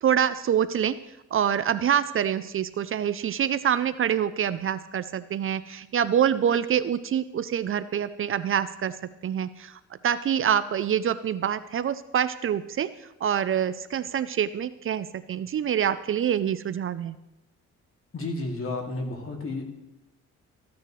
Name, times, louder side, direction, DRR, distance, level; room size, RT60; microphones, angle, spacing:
voice 1, 0.0-1.0 1.3-9.0 9.2-17.2, right 9 dB, 45° right, 14 dB, 0.5 m, -26 dB
voice 2, 18.1-19.6, left 2 dB, 45° left, 2 dB, 2.4 m, -31 dB
15.0 x 9.4 x 3.2 m, 0.91 s
cardioid pair, 90°, 30 cm